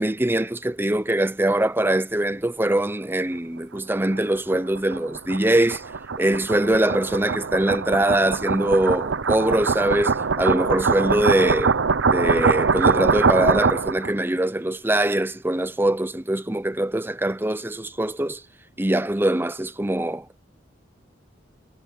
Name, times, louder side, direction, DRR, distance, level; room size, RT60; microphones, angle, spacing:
voice 1, 0.0-5.8 6.2-11.7 12.1-18.4 18.8-20.4, right 1 dB, 10° right, 0.7 m, -22 dB
sound 1, 4.1-14.1, right 5 dB, 75° right, 0.8 m, -23 dB
head